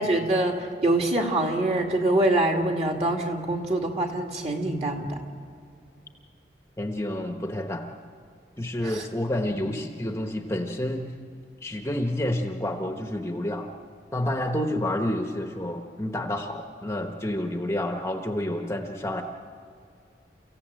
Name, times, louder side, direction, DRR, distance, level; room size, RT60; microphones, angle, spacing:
voice 1, 0.0-5.2 8.8-9.0 9.5-9.6, right 1 dB, 35° right, 2 dB, 2.4 m, -25 dB
voice 2, 6.8-7.9 8.6-11.1 11.6-13.7 14.1-19.2, left 1 dB, 15° left, 4 dB, 1.1 m, -29 dB
29.5 x 15.5 x 9.0 m, 2.4 s
head